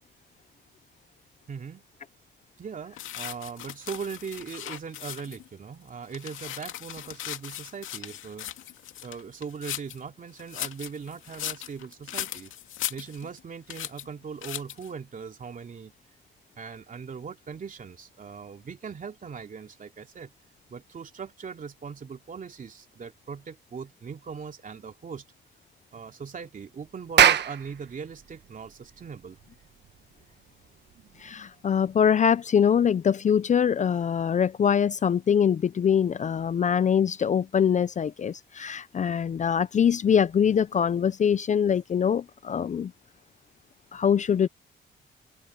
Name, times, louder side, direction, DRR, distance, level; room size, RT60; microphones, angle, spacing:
voice 1, 1.5-1.8 2.6-8.5 9.0-12.5 12.9-15.9 16.6-20.3 20.7-25.3 25.9-29.4, right 6 dB, 40° right, 2.8 m, -40 dB
sound 1, 3.0-5.5 5.9-10.0 10.4-13.4 13.7-14.1 14.4-14.9, left 12 dB, 85° left, 2.3 m, -38 dB
Clapping, 27.0-31.8, right 9 dB, 60° right, 1.4 m, -26 dB
voice 2, 31.2-42.9 43.9-44.5, left 8 dB, 40° left, 0.5 m, -23 dB
open air
cardioid pair, 90°, 20 cm